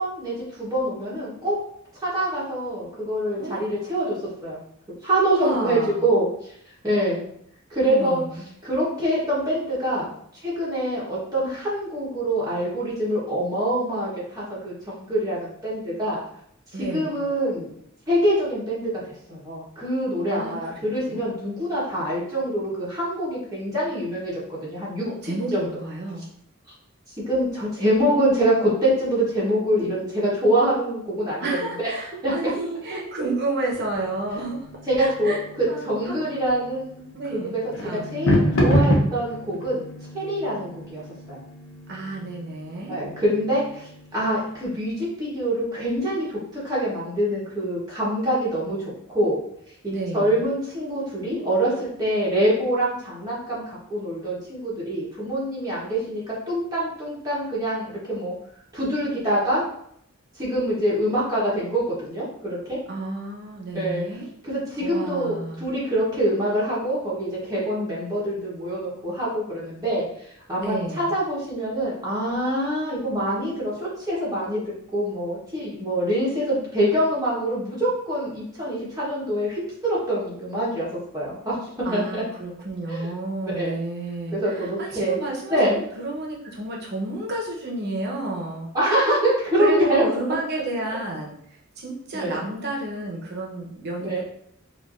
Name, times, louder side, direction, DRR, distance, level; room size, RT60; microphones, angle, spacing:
voice 1, 0.0-1.6 2.0-4.2 4.4-4.6 5.0-6.5 6.8-7.2 7.7-8.2 8.6-10.1 10.4-16.2 16.8-17.7 18.1-18.9 19.3-25.1 25.5-25.7 27.3-31.9 32.2-32.3 32.9-33.0 34.9-35.3 35.8-37.0 37.3-37.6 37.9-39.9 40.1-41.0 41.3-41.4 42.9-46.3 46.5-48.8 49.1-49.4 49.8-58.3 58.7-59.6 60.4-62.8 63.7-64.0 64.4-74.6 74.9-80.9 81.1-81.6 81.9-82.2 82.9-83.1 83.4-83.8 84.3-85.2 85.5-85.8 88.7-90.0 92.1-92.4 94.0-94.2, right 1 dB, 20° right, -8 dB, 1.0 m, -25 dB
voice 2, 3.4-4.1 5.3-6.0 7.8-8.5 16.7-17.2 20.3-21.3 25.0-26.3 31.4-34.7 35.0-36.2 37.1-37.5 37.8-38.1 41.9-43.0 49.9-50.5 62.9-64.3 64.8-65.7 70.6-71.1 81.8-88.7 89.5-94.2, right 2 dB, 55° right, -1 dB, 0.8 m, -31 dB
sound 1, 33.7-44.5, equal, 70° left, 0.8 m, -28 dB
4.3 x 2.5 x 2.5 m, 0.70 s
head